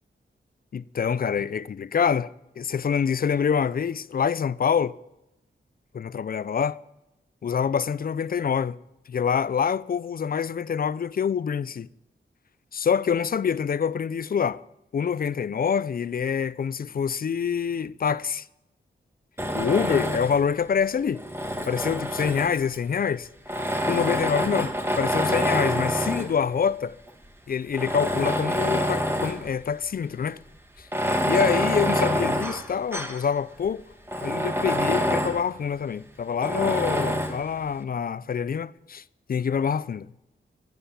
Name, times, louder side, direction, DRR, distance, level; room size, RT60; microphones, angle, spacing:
voice 1, 0.7-5.0 5.9-6.8 7.4-8.8 9.1-11.9 12.7-14.6 14.9-18.5 19.5-21.2 21.7-23.3 23.9-27.0 27.5-30.4 30.8-30.9 31.2-33.8 34.2-39.0 39.3-40.1, left 7 dB, 50° left, 0.4 m, -26 dB
Tools, 19.4-20.5 21.1-22.8 23.5-26.4 27.1-27.2 27.7-29.5 29.8-29.9 30.8-33.3 33.6-33.7 34.1-35.4 36.4-37.4, equal, 10° right, 1.3 m, -26 dB
15.5 x 8.1 x 6.9 m
wide cardioid pair, 100°, 20 cm